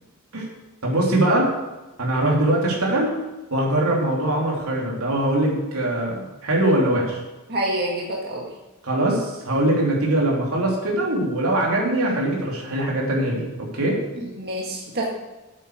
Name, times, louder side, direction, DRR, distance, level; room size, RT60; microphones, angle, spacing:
voice 1, 0.8-1.5 2.0-3.1 3.5-7.2 8.8-14.0, right 1 dB, 85° right, -2 dB, 3.2 m, -22 dB
voice 2, 7.5-8.5 14.2-15.1, right 1 dB, 45° right, -3 dB, 2.0 m, -27 dB
8.7 x 8.4 x 6.4 m, 1.1 s
head